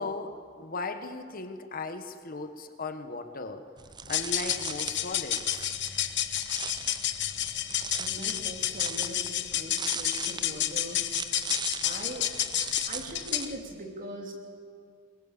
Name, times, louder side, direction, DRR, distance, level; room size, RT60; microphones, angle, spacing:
voice 1, 0.0-3.7 4.1-5.7, left 3 dB, 45° left, 8 dB, 1.2 m, -37 dB
sound 1, 3.8-13.5, right 6 dB, 20° right, 0.6 m, -40 dB
sound 2, 4.0-13.6, left 12 dB, 65° left, 0.9 m, -30 dB
voice 2, 8.0-11.0 11.8-12.3 12.9-14.3, right 1 dB, 45° right, 1 dB, 3.4 m, -41 dB
22.0 x 21.5 x 7.5 m, 2.1 s
head